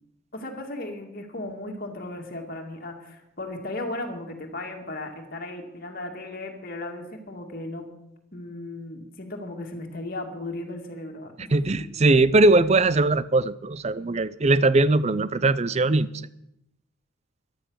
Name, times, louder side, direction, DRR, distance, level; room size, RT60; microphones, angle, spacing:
voice 1, 0.3-7.9 8.3-11.5, left 2 dB, 45° left, 2 dB, 2.3 m, -36 dB
voice 2, 11.5-16.1, right 2 dB, 30° right, 17 dB, 0.5 m, -20 dB
13.5 x 12.0 x 6.4 m, 0.82 s
head